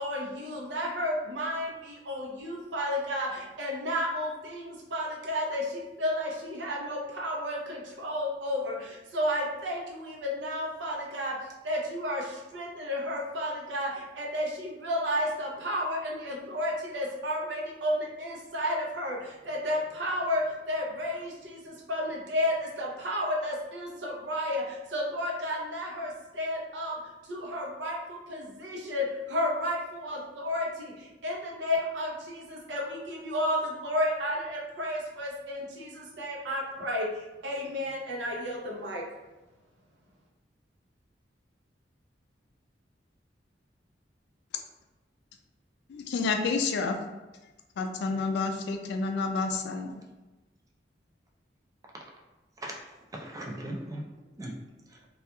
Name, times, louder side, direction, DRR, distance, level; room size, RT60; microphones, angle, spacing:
voice 1, 0.0-39.1, left 1 dB, 80° right, -1 dB, 0.6 m, -32 dB
voice 2, 45.9-47.0 47.8-50.0, left 4 dB, 70° left, 5 dB, 0.3 m, -29 dB
voice 3, 52.6-55.1, right 1 dB, 20° right, 0 dB, 0.4 m, -40 dB
2.8 x 2.3 x 2.2 m, 1.1 s
head